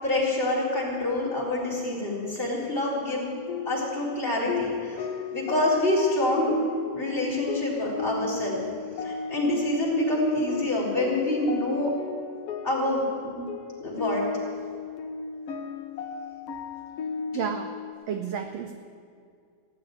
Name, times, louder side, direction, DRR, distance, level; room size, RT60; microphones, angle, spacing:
voice 1, 0.0-3.3 3.6-5.0 5.3-6.6 6.9-8.6 9.0-11.9 12.6-13.5 13.8-14.2, left 1 dB, 15° left, -4 dB, 4.2 m, -26 dB
sound 1, 3.3-17.9, left 7 dB, 65° left, 1.7 m, -35 dB
voice 2, 17.3-17.7 18.1-18.7, right 7 dB, 75° right, 6 dB, 1.5 m, -31 dB
17.0 x 8.2 x 9.5 m, 2.3 s
omnidirectional pair, 3.6 m